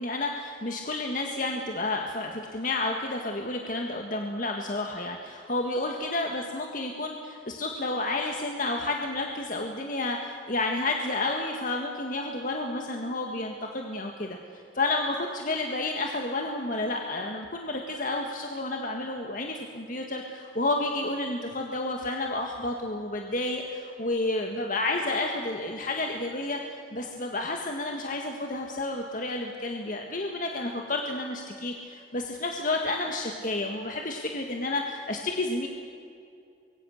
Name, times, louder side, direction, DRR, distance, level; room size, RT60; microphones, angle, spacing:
voice 1, 0.0-14.4 14.7-35.7, left 2 dB, 50° left, 2 dB, 1.8 m, -31 dB
25.5 x 22.5 x 6.6 m, 2.5 s
head